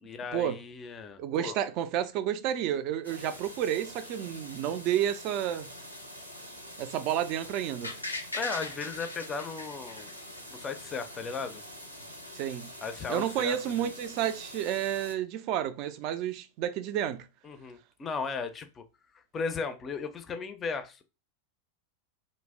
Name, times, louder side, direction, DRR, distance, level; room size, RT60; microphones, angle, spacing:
voice 1, 0.0-1.6 8.3-10.1 10.5-11.6 12.8-13.9 17.4-18.8 19.1-21.0, left 5 dB, 20° left, 0.4 m, -36 dB
voice 2, 1.2-5.7 6.8-8.0 12.3-12.7 13.1-17.3, right 10 dB, 40° right, 0.3 m, -30 dB
sound 1, 3.0-15.1, equal, 90° right, 0.6 m, -46 dB
sound 2, 7.8-10.8 11.1-11.2, left 2 dB, 80° left, 0.5 m, -38 dB
2.5 x 2.0 x 3.4 m
figure-of-eight pair, 90°, 0 cm